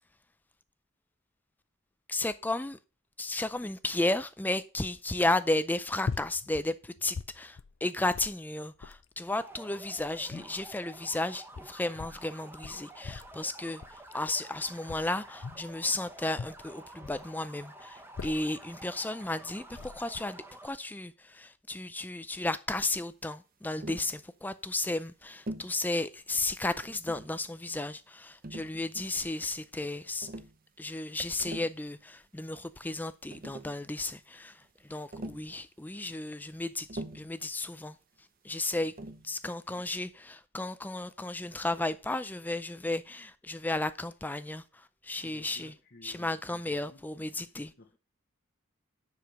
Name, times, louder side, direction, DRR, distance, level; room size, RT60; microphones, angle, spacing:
voice 1, 2.1-2.8 3.2-30.3 30.8-38.0 38.4-38.9 39.2-45.7 46.0-47.7, left 2 dB, 10° left, 0.4 m, -34 dB
sound 1, 6.0-6.7 7.0-7.8 8.1-8.4 8.8-9.1 9.7-10.7 11.4-12.2 12.6-13.4 13.8-14.1 14.9-15.7 16.3-17.3 17.9-18.6 19.3-19.4 19.7-20.2, left 4 dB, 65° left, 0.5 m, -41 dB
sound 2, 9.3-20.7, right 1 dB, 10° right, 0.9 m, -50 dB
Tap, 23.8-24.1 25.5-25.8 26.8-27.4 28.4-29.2 30.2-30.6 31.3-31.8 32.9-33.0 33.3-33.8 35.1-35.5 36.9-37.4 39.0-39.3, right 1 dB, 40° right, 0.8 m, -42 dB
voice 2, 39.7-40.0 45.2-48.0, left 2 dB, 45° left, 1.0 m, -57 dB
10.0 x 4.9 x 6.3 m
head